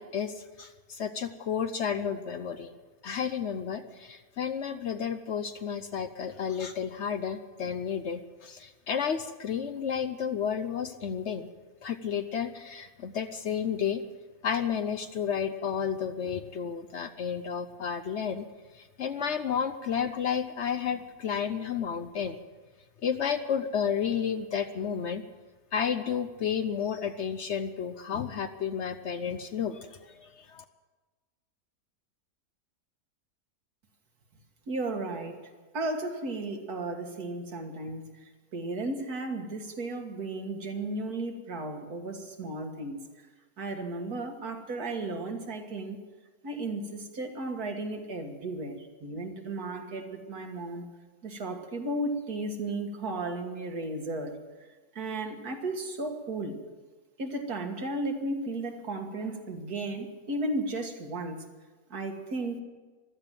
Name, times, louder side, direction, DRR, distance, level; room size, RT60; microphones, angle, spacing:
voice 1, 0.0-2.7 3.0-11.5 11.8-14.0 14.4-18.4 18.8-22.4 23.0-25.2 25.7-30.6, left 7 dB, 60° left, 10 dB, 0.8 m, -32 dB
voice 2, 34.7-35.4 35.7-38.1 38.5-43.0 43.6-46.0 46.4-50.8 51.2-54.4 55.0-56.6 57.2-61.4 61.9-62.6, right 2 dB, 75° right, 4 dB, 2.2 m, -34 dB
15.5 x 12.5 x 7.5 m, 1.3 s
omnidirectional pair, 1.6 m